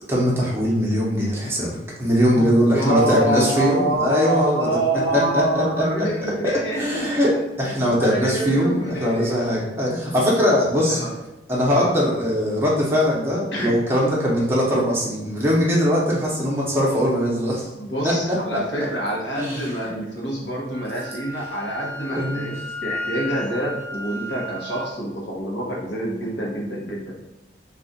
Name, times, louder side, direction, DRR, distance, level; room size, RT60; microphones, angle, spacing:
voice 1, 0.1-4.7 5.1-5.8 6.4-7.3 7.6-11.0 11.5-17.6 18.0-18.6 19.4-19.7 22.1-22.5, equal, 15° right, -5 dB, 0.7 m, -21 dB
voice 2, 2.3-7.2 7.8-9.6 10.9-11.1 11.7-11.9 13.5-13.8 16.3-16.4 17.8-22.5 22.8-27.1, right 1 dB, 65° left, -3 dB, 0.9 m, -26 dB
Wind instrument woodwind instrument, 20.7-24.9, left 1 dB, 45° left, 1.1 m, -34 dB
2.4 x 2.4 x 3.9 m, 1.0 s
head